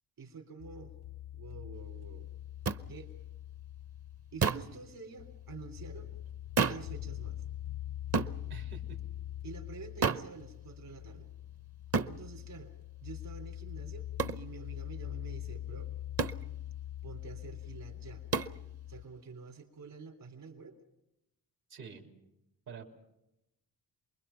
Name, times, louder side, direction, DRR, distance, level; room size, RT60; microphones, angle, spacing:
voice 1, 0.2-0.9 1.4-2.3 2.9-3.1 4.3-6.1 6.6-7.4 9.4-11.3 12.1-12.7 13.0-15.9 17.0-18.2 18.9-20.8, right 4 dB, 65° right, 5 dB, 3.5 m, -48 dB
sound 1, 0.6-19.0, left 12 dB, 85° left, 0.8 m, -43 dB
sound 2, 2.7-2.8 4.4-4.7 6.6-6.9 8.1-8.4 10.0-10.3 11.9-12.2 14.2-14.4 16.2-16.4 18.3-18.6, right 5 dB, 40° right, 0.8 m, -30 dB
voice 2, 8.5-9.0 21.7-22.1 22.7-22.9, right 5 dB, 80° right, 2 dB, 3.5 m, -47 dB
28.5 x 22.0 x 5.8 m, 0.87 s
wide cardioid pair, 125°, 37 cm